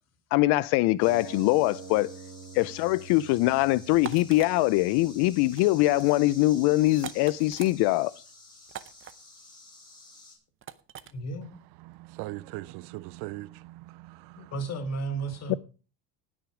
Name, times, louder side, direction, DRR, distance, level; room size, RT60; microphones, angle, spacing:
voice 1, 0.3-2.1 2.5-8.1 15.5-15.6, left 18 dB, 70° left, 0.5 m, -23 dB
sound 1, 1.0-10.4, left 2 dB, 10° left, 4.6 m, -51 dB
sound 2, 1.0-7.0, right 6 dB, 50° right, 2.9 m, -47 dB
sound 3, 3.9-4.5 5.4-5.7 6.0-6.2 6.9-7.7 8.7-9.1 10.6-11.1, right 10 dB, 30° right, 0.7 m, -41 dB
voice 2, 11.1-11.5 14.4-15.6, right 3 dB, 40° left, 2.1 m, -33 dB
voice 3, 11.8-14.5, right 19 dB, 70° right, 0.6 m, -40 dB
18.5 x 6.3 x 4.9 m
cardioid pair, 145°, 41 cm